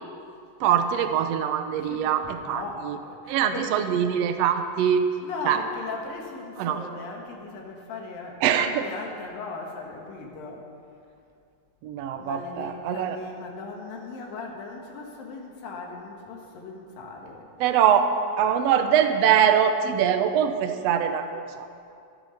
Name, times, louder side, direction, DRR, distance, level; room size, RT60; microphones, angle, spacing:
voice 1, 0.6-3.0 3.3-5.0 5.4-5.6 6.6-6.8 8.4-8.8 11.8-13.2 17.6-18.1 18.4-21.7, right 9 dB, 85° right, 8 dB, 1.4 m, -23 dB
voice 2, 1.8-4.0 5.2-10.6 12.2-17.5, left 3 dB, 80° left, 0 dB, 3.7 m, -38 dB
15.0 x 13.0 x 6.8 m, 2.4 s
omnidirectional pair, 4.0 m